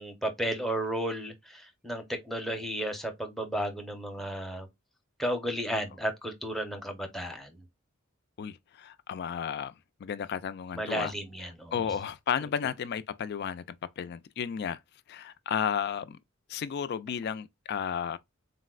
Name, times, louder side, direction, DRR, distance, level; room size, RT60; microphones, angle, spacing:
voice 1, 0.0-4.7 5.2-7.6 10.7-11.7, right 1 dB, ahead, 0.7 m, -33 dB
voice 2, 8.4-9.7 10.0-11.1 11.4-14.8 15.1-16.2 16.5-18.2, left 7 dB, 50° left, 0.3 m, -33 dB
4.0 x 2.0 x 2.3 m
head